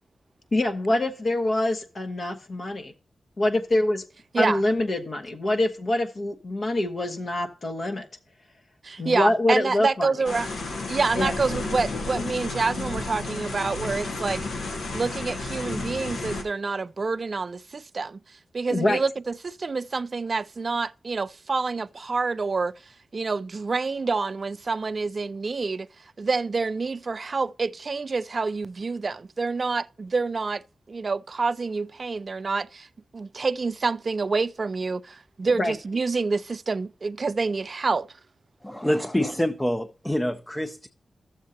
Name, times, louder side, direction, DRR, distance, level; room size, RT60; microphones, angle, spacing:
voice 1, 0.5-2.9 3.4-4.0 4.4-8.1 9.0-10.1 11.1-11.3 18.7-19.0 35.6-35.7, left 1 dB, 60° left, 1.1 m, -25 dB
voice 2, 8.8-10.5 10.9-14.5 14.9-18.2 18.5-22.7 23.1-25.9 26.2-32.9 33.1-38.1, right 4 dB, 50° right, 0.3 m, -27 dB
sound 1, 10.2-16.4, left 3 dB, 85° left, 1.3 m, -32 dB
voice 3, 38.6-40.9, equal, 15° left, 0.6 m, -26 dB
12.0 x 7.2 x 2.8 m
cardioid pair, 50°, 0 cm